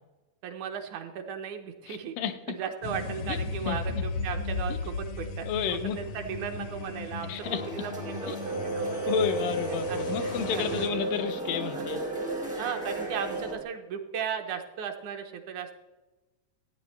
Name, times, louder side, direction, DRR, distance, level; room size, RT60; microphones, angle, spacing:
voice 1, 0.4-2.2 2.5-9.1 9.9-10.9 11.7-12.0 12.6-15.7, right 7 dB, 75° right, 5 dB, 2.0 m, -36 dB
voice 2, 1.9-2.6 3.3-3.4 3.7-4.0 5.5-6.0 7.3-7.6 8.3-8.4 9.1-12.0, left 8 dB, 85° left, 8 dB, 2.4 m, -31 dB
sound 1, 2.8-10.9, left 3 dB, 70° left, 1.5 m, -36 dB
sound 2, 7.4-13.5, equal, 10° right, 0.3 m, -39 dB
sound 3, 8.4-13.6, right 3 dB, 60° right, 0.7 m, -34 dB
14.0 x 9.1 x 3.1 m, 1.1 s
omnidirectional pair, 3.8 m